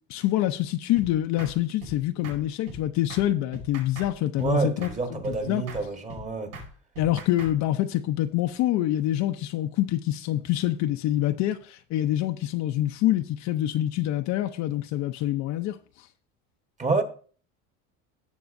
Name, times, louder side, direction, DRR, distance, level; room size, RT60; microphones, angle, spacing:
voice 1, 0.1-5.6 7.0-16.1, left 14 dB, 50° left, 0.6 m, -26 dB
sound 1, 1.0-1.1 1.4-1.5 1.8-2.0 2.2-2.4 2.7-2.8 3.1-3.3 3.5-4.1 4.4-4.5 4.8-5.0 5.2-5.4 5.7-5.8 6.1-6.2 6.5-6.7 7.0-7.5, right 1 dB, 80° right, 5.7 m, -39 dB
voice 2, 4.4-6.6 16.8-17.0, right 3 dB, 20° right, 1.3 m, -27 dB
17.5 x 6.9 x 2.6 m
supercardioid pair, 125°, 35 cm